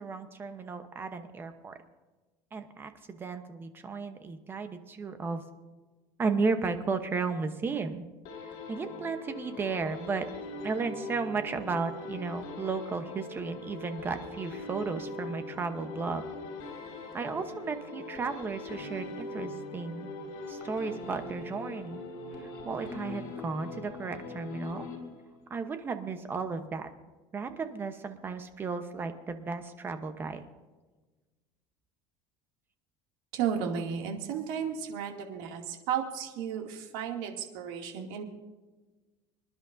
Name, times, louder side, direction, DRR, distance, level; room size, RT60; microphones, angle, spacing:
voice 1, 0.0-1.7 2.5-5.4 6.2-8.0 8.7-10.2 10.6-16.2 17.1-20.1 20.5-22.0 22.4-24.9 25.5-26.9 27.3-30.4, right 4 dB, 20° right, 8 dB, 0.9 m, -34 dB
sound 1, 8.2-25.5, left 2 dB, 60° left, 5.3 m, -41 dB
voice 2, 33.3-38.2, right 8 dB, 75° right, 2 dB, 2.4 m, -33 dB
26.0 x 11.0 x 2.7 m, 1.3 s
cardioid pair, 165°, 12 cm